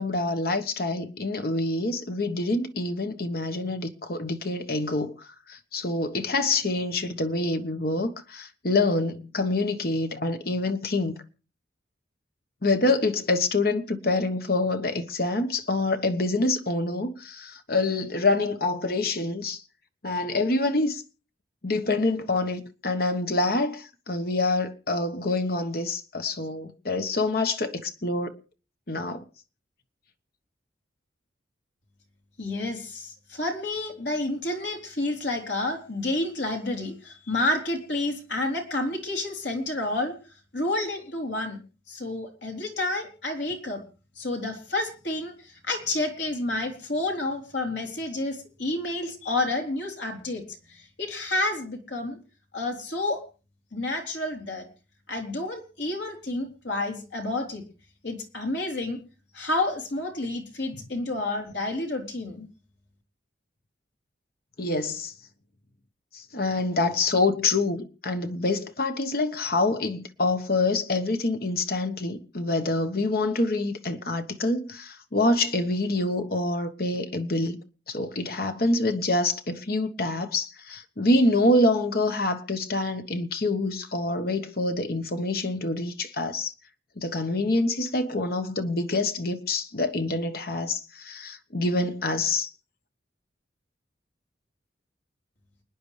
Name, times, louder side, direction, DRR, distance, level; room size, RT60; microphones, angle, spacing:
voice 1, 0.0-5.1 5.5-11.1 12.6-19.6 20.0-21.0 21.6-28.4 28.9-29.2 64.6-65.1 66.1-77.6 77.9-86.5 87.0-92.5, left 2 dB, 50° left, 1.3 m, -26 dB
voice 2, 32.4-40.1 40.5-41.6 41.9-43.8 44.2-50.4 51.0-52.2 52.5-53.2 53.7-54.7 55.1-57.6 58.0-59.0 59.3-62.5, left 2 dB, 70° left, 3.6 m, -29 dB
29.5 x 9.9 x 3.3 m
head